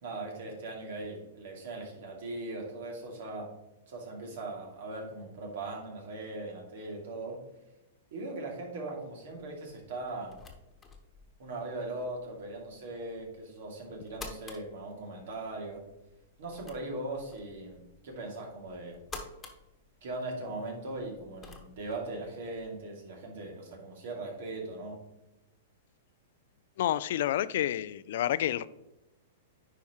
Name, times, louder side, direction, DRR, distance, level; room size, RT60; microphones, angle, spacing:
voice 1, 0.0-3.5 3.9-7.4 8.1-10.4 11.4-15.8 16.4-19.0 20.0-25.0, right 2 dB, 65° right, 2.5 m, -39 dB
sound 1, 9.3-22.8, left 4 dB, 15° left, 1.3 m, -52 dB
voice 2, 26.8-28.7, left 12 dB, 65° left, 0.3 m, -29 dB
9.8 x 4.6 x 3.1 m
hypercardioid pair, 125°, 0 cm